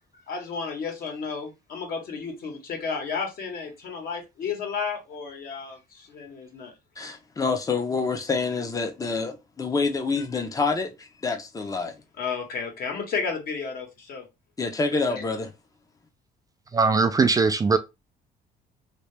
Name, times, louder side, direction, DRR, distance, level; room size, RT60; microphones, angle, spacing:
voice 1, 0.3-6.7 12.2-14.2 14.9-15.2, left 5 dB, 60° left, 1.5 m, -32 dB
voice 2, 7.0-12.0 14.6-15.5, left 4 dB, 20° left, 0.7 m, -27 dB
voice 3, 16.7-17.8, right 4 dB, 20° right, 0.4 m, -20 dB
2.9 x 2.8 x 3.3 m
cardioid pair, 110°, 17 cm